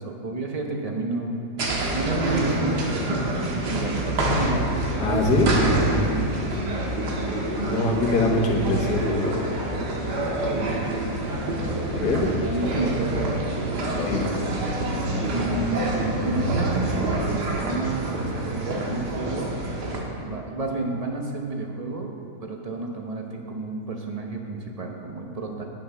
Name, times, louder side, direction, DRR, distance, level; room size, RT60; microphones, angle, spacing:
voice 1, 0.0-1.4 1.9-4.6 5.1-6.9 10.5-11.4 12.1-13.5 13.9-14.1 15.3-19.5 20.2-22.1 22.4-25.7, right 3 dB, 35° right, 1 dB, 0.6 m, -31 dB
sound 1, 1.6-20.0, right 1 dB, 80° right, 1.9 m, -26 dB
voice 2, 5.0-5.5 7.6-9.4 11.9-12.3 14.0-14.3, left 2 dB, 75° left, 1 dB, 1.7 m, -23 dB
9.3 x 7.6 x 5.7 m, 2.6 s
omnidirectional pair, 1.8 m